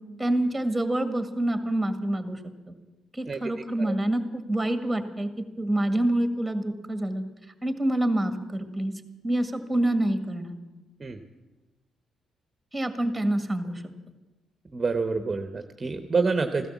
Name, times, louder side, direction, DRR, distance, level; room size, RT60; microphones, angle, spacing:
voice 1, 0.2-2.4 2.7-2.8 3.1-5.3 5.6-7.2 7.6-10.6 12.7-13.8, right 1 dB, 10° right, 8 dB, 1.8 m, -27 dB
voice 2, 14.7-16.7, right 4 dB, 30° right, 7 dB, 1.0 m, -27 dB
15.5 x 12.5 x 7.2 m, 1.1 s
cardioid pair, 90°, 0 cm